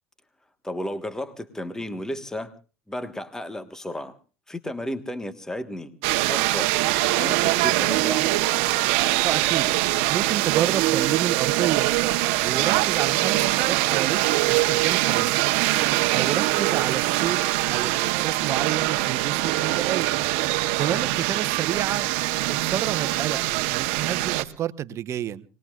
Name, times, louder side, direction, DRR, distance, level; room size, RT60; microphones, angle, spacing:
voice 1, 0.6-2.5 2.9-4.1 4.5-5.9 6.3-6.7 7.1-8.2, left 1 dB, 10° left, 10 dB, 1.4 m, -33 dB
sound 1, 6.0-24.4, right 18 dB, 75° right, 1.0 m, -23 dB
voice 2, 9.2-9.7 10.1-11.9 12.4-15.3 16.1-17.4 17.7-20.1 20.5-22.1 22.4-23.4 23.7-25.4, right 10 dB, 45° right, 13 dB, 1.0 m, -29 dB
27.0 x 20.5 x 2.4 m, 0.35 s
supercardioid pair, 100°, 7 cm